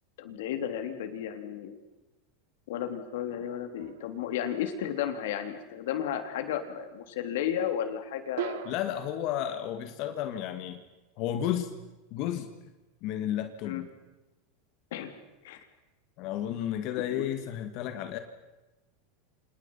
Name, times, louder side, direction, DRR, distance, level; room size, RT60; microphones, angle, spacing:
voice 1, 0.2-1.7 2.7-8.7 13.6-13.8 14.9-15.1 15.4-15.6 17.2-17.3, left 9 dB, 75° left, 7 dB, 3.7 m, -33 dB
sound 1, 3.8-4.4 8.4-9.3, right 13 dB, 70° right, 1.6 m, -39 dB
voice 2, 8.6-10.8 11.2-11.7 12.1-12.5 13.0-13.9 16.2-18.2, left 11 dB, 45° left, 8 dB, 2.1 m, -32 dB
29.5 x 27.0 x 5.8 m, 1.0 s
supercardioid pair, 150°, 0 cm